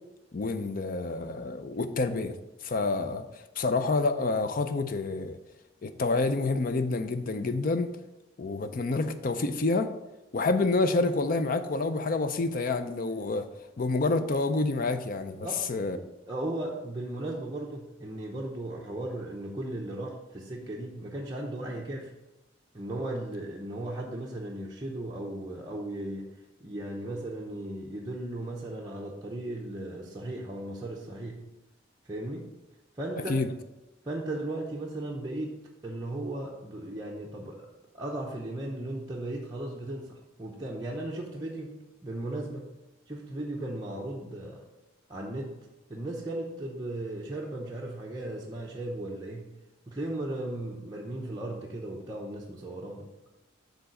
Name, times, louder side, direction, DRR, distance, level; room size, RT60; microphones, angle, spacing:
voice 1, 0.3-2.3 2.6-3.3 3.6-5.3 5.8-7.9 8.4-9.9 10.3-13.5 13.8-16.0 33.3-33.5, left 3 dB, 45° left, 9 dB, 0.5 m, -28 dB
voice 2, 15.4-22.1 22.7-26.3 26.6-31.4 32.0-32.5 33.0-33.3 34.0-37.7 37.9-42.7 43.1-44.6 45.1-45.6 45.9-49.5 49.9-53.1, right 1 dB, 20° right, -3 dB, 0.7 m, -36 dB
7.0 x 3.9 x 6.4 m, 1.0 s
head